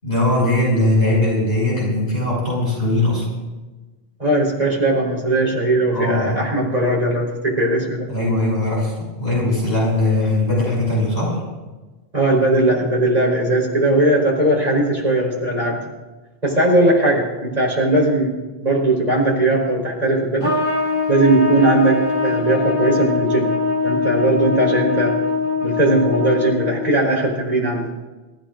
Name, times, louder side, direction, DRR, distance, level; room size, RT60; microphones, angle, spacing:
voice 1, 0.0-3.3 5.9-6.4 8.1-8.9 9.2-11.4, left 1 dB, 70° left, -5 dB, 6.9 m, -19 dB
voice 2, 4.2-8.1 12.1-15.9 16.4-20.5 21.1-23.5 23.8-25.2 25.6-27.9, right 1 dB, 40° right, -3 dB, 4.6 m, -18 dB
Trumpet, 20.4-26.9, left 4 dB, 30° left, 2.6 m, -22 dB
27.5 x 15.0 x 2.6 m, 1.2 s
omnidirectional pair, 1.1 m